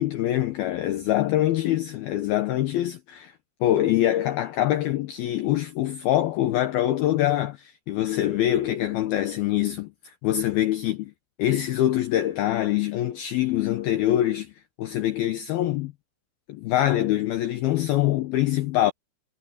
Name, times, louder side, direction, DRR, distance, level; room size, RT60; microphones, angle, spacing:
voice 1, 0.0-3.3 3.6-11.1 11.4-14.5 14.8-15.9 16.5-18.9, left 13 dB, 90° left, 2.1 m, -24 dB
omnidirectional pair, 5.7 m